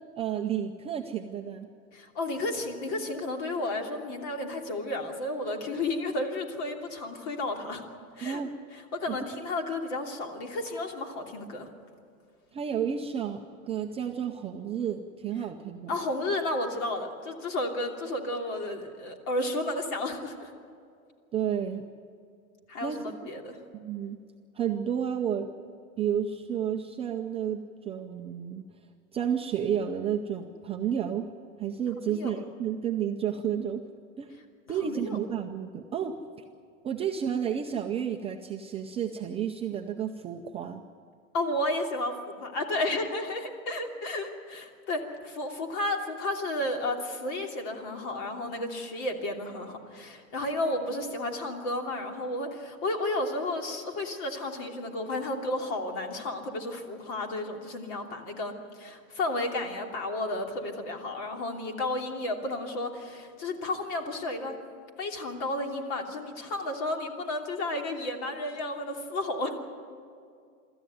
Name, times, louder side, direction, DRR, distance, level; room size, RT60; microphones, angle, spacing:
voice 1, 0.0-1.7 8.2-8.5 9.1-9.2 12.5-15.9 21.3-21.8 22.8-23.1 23.7-24.2 24.5-25.5 26.0-28.6 29.1-31.3 31.6-33.8 34.2-34.3 34.7-36.2 36.8-40.8, right 8 dB, 15° right, 2 dB, 0.5 m, -31 dB
voice 2, 1.9-7.8 8.2-8.4 8.9-11.7 15.9-20.5 22.7-23.6 32.0-32.3 34.8-35.2 41.3-64.6 65.0-69.6, left 2 dB, 45° left, 3 dB, 3.0 m, -32 dB
24.5 x 14.0 x 9.3 m, 2.3 s
supercardioid pair, 145°, 41 cm